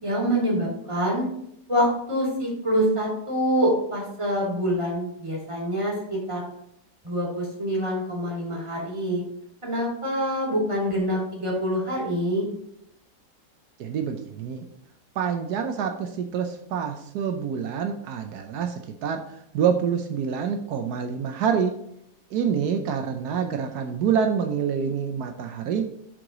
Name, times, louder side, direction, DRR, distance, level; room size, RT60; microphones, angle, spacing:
voice 1, 0.0-1.3 1.7-6.5 7.0-9.2 9.6-12.5, equal, 20° right, -4 dB, 3.0 m, -25 dB
voice 2, 13.8-14.7 15.2-19.2 19.5-21.7 22.3-25.9, right 7 dB, 80° right, 5 dB, 1.2 m, -26 dB
9.8 x 4.8 x 3.9 m, 0.74 s
omnidirectional pair, 1.7 m